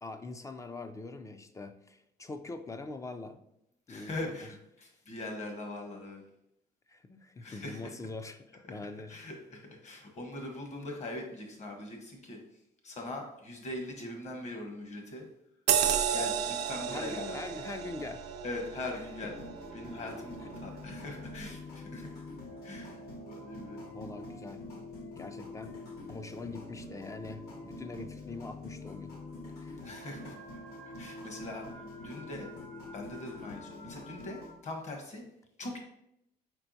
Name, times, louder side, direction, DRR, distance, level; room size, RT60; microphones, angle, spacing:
voice 1, 0.0-3.4 3.9-4.1 6.9-9.2 16.9-18.2 19.2-19.3 23.8-24.6 25.2-25.8 26.1-29.1 29.6-29.8, left 3 dB, 20° left, 9 dB, 0.3 m, -43 dB
voice 2, 3.9-6.2 7.4-7.9 9.1-12.4 12.8-15.3 16.1-17.4 18.4-19.3 19.7-22.2 22.6-23.0 23.3-23.8 29.8-30.4 30.7-32.5 32.9-35.2 35.6-35.8, left 2 dB, 45° left, 3 dB, 1.1 m, -41 dB
sound 1, 15.7-20.6 21.1-21.2, right 9 dB, 80° right, 0.5 m, -33 dB
sound 2, 19.3-34.5, left 2 dB, 70° left, 1.4 m, -45 dB
4.5 x 4.4 x 2.7 m, 0.78 s
cardioid pair, 110°, 17 cm